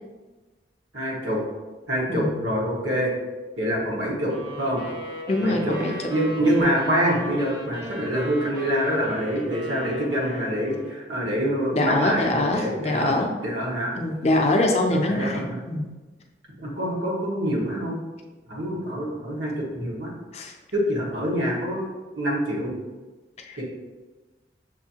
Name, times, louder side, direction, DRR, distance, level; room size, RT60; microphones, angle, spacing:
voice 1, 0.9-1.4 1.9-3.1 3.6-4.8 5.4-13.9 14.9-15.6 16.6-18.0 18.5-20.1 20.7-21.9 22.2-22.8 23.6-23.7, equal, 85° right, -4 dB, 1.3 m, -26 dB
sound 1, 4.3-11.1, equal, 25° right, 0.7 m, -37 dB
voice 2, 5.3-6.1 11.7-13.3 13.9-15.9 20.3-20.5 23.5-23.6, left 1 dB, 35° left, 2 dB, 0.4 m, -24 dB
6.5 x 2.6 x 2.8 m, 1.2 s
head